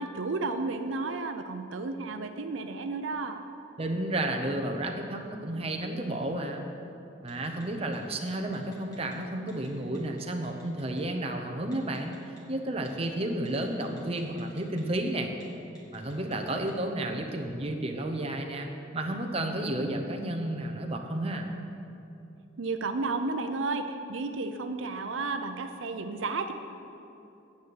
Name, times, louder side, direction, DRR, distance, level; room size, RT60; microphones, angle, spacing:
voice 1, 0.0-3.4 22.6-26.5, right 3 dB, 90° right, 7 dB, 0.7 m, -32 dB
voice 2, 3.8-6.6 7.2-12.1 12.5-15.3 15.9-21.5, right 1 dB, 30° right, 3 dB, 0.9 m, -32 dB
Telephone, 7.3-7.6 7.9-9.1 9.5-9.7 9.9-11.0 11.7-12.4 12.9-13.1 13.5-15.0 15.3-15.4 15.8-16.7, equal, 20° left, 2.5 m, -56 dB
9.5 x 7.0 x 8.0 m, 2.7 s
head